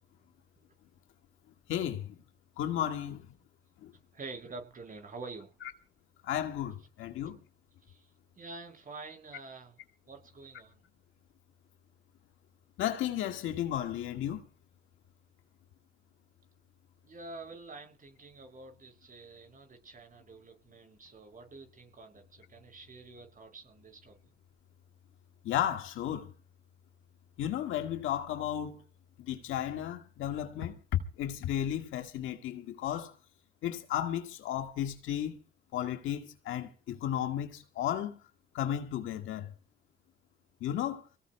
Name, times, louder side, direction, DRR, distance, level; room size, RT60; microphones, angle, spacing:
voice 1, 1.7-2.1 2.6-3.3 3.8-3.9 6.2-7.4 12.8-14.4 25.4-26.3 27.4-28.8 29.2-30.7 31.2-33.1 33.6-35.4 35.7-38.2 38.5-39.5 40.6-41.0, left 11 dB, 90° left, 1.7 m, -34 dB
voice 2, 4.1-5.6 7.8-8.1 8.3-10.8 17.0-24.2, right 3 dB, 45° right, 6.3 m, -47 dB
24.5 x 18.5 x 2.2 m
cardioid pair, 90°, 20 cm